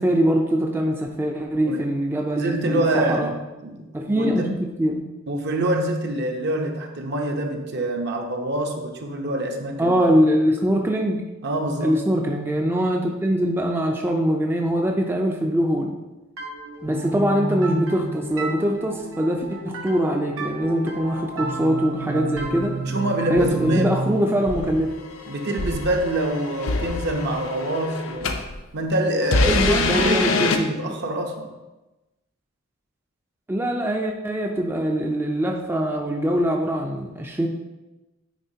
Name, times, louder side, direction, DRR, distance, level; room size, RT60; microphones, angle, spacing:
voice 1, 0.0-3.3 3.9-5.0 9.8-11.2 11.8-16.0 16.8-22.8 23.3-24.9 29.5-31.0 33.5-37.5, equal, 10° right, 1 dB, 0.4 m, -23 dB
voice 2, 2.3-3.3 3.6-3.9 4.1-4.5 5.3-10.0 11.4-12.0 16.8-17.0 22.8-24.0 25.3-28.3 28.7-31.5, right 1 dB, 55° right, 3 dB, 0.8 m, -25 dB
sound 1, 16.4-25.9, right 2 dB, 90° right, 1.0 m, -32 dB
sound 2, 22.4-22.7 23.4-23.7 24.5-28.5 29.2-30.6, left 3 dB, 70° left, 0.6 m, -25 dB
9.1 x 3.7 x 2.7 m, 1.1 s
head